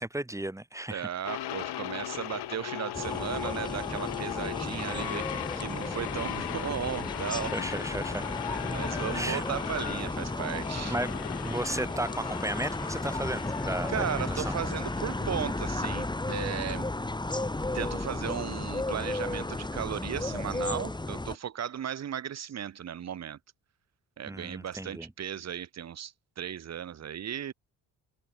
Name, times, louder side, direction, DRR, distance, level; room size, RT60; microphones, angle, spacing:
voice 1, 0.0-1.1 7.5-8.2 9.1-9.4 10.9-14.6 24.3-25.1, right 1 dB, 5° right, 1.1 m, -34 dB
voice 2, 0.9-7.6 8.7-10.9 13.9-16.9 17.7-23.4 24.2-27.5, right 9 dB, 40° right, 0.8 m, -36 dB
sound 1, 1.2-17.5, left 13 dB, 75° left, 1.6 m, -39 dB
sound 2, 2.9-21.4, left 2 dB, 10° left, 1.5 m, -34 dB
cardioid pair, 70°, 40 cm